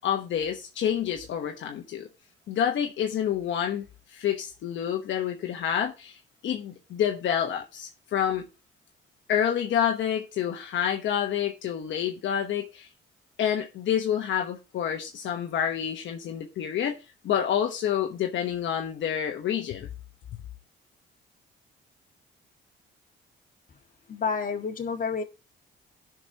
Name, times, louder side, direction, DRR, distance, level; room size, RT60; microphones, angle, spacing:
voice 1, 0.0-2.1 2.5-6.2 6.4-8.4 9.3-12.9 13.4-17.0 17.2-19.9, left 9 dB, 70° left, 1.1 m, -28 dB
voice 2, 24.1-25.2, left 5 dB, 45° left, 1.8 m, -29 dB
16.5 x 6.0 x 2.9 m
cardioid pair, 90°, 20 cm